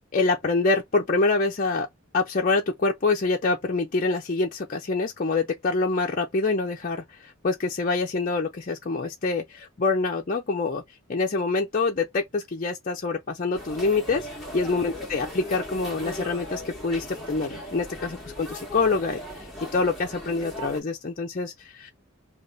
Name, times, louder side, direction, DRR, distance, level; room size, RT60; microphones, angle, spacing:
voice 1, 0.1-1.9 2.1-10.8 11.1-14.3 14.5-19.5 19.7-21.9, left 3 dB, 40° left, 0.5 m, -26 dB
sound 1, 13.5-20.8, left 1 dB, ahead, 1.1 m, -38 dB
3.4 x 2.4 x 3.9 m
head